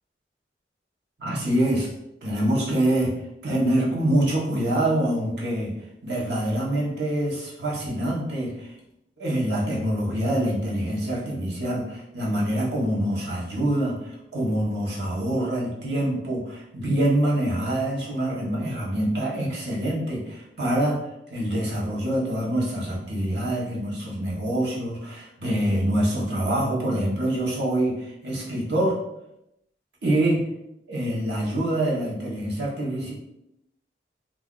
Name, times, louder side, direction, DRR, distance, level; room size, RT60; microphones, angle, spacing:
voice 1, 1.2-1.9 2.2-3.2 3.4-8.8 9.2-21.0 21.3-29.0 30.0-30.5 30.9-33.1, right 1 dB, 75° right, -4 dB, 1.0 m, -25 dB
2.6 x 2.4 x 3.6 m, 0.84 s
head